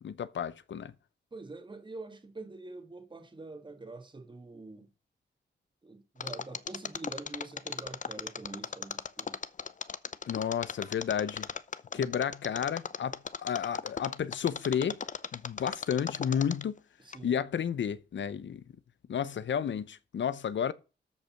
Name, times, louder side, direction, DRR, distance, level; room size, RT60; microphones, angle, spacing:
voice 1, 0.0-0.9 10.3-11.5 11.9-15.0 15.3-16.8 17.2-18.6 19.1-20.7, left 8 dB, 80° left, 0.7 m, -32 dB
voice 2, 1.3-4.9 5.8-9.4 11.9-12.2 17.0-17.4, right 3 dB, 25° right, 1.8 m, -45 dB
Mechanisms, 6.2-16.8 17.1-17.2, left 6 dB, 40° left, 0.6 m, -37 dB
13.5 x 5.3 x 5.9 m
wide cardioid pair, 125°, 19 cm